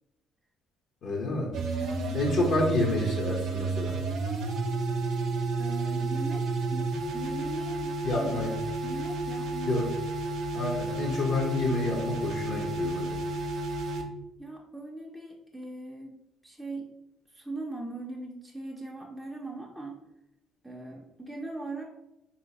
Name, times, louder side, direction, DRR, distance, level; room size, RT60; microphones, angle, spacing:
voice 1, 1.0-1.5 2.1-4.0 8.0-8.5 9.7-9.9 10.5-13.2, left 2 dB, 65° left, -2 dB, 0.7 m, -28 dB
sound 1, 1.5-14.0, right 3 dB, 70° right, 0.5 m, -31 dB
voice 2, 1.8-2.2 5.6-8.5 8.8-9.8 14.4-16.1 16.4-16.9 17.3-20.0 20.6-21.8, right 2 dB, ahead, -2 dB, 0.4 m, -40 dB
3.1 x 2.7 x 2.8 m, 0.88 s
supercardioid pair, 85°, 0 cm